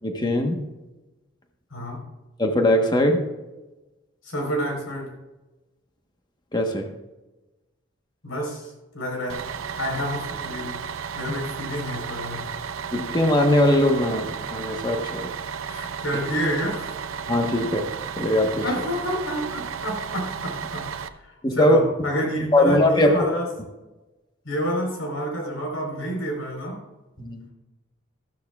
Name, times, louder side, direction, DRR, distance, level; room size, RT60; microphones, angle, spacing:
voice 1, 0.0-0.7 2.4-3.3 6.5-6.9 11.2-11.4 12.9-15.3 17.3-17.9 18.2-18.6 21.4-21.8 22.5-23.2 27.2-27.4, left 1 dB, 20° left, 3 dB, 1.2 m, -20 dB
voice 2, 1.7-2.0 4.2-5.1 8.2-9.4 9.8-10.8 11.1-12.5 15.7-16.9 18.6-20.8 21.2-23.5 24.4-26.8, equal, 85° left, 0 dB, 4.2 m, -29 dB
Bus, 9.3-21.1, right 6 dB, 80° right, 0.6 m, -33 dB
14.5 x 13.5 x 2.4 m, 1.1 s
head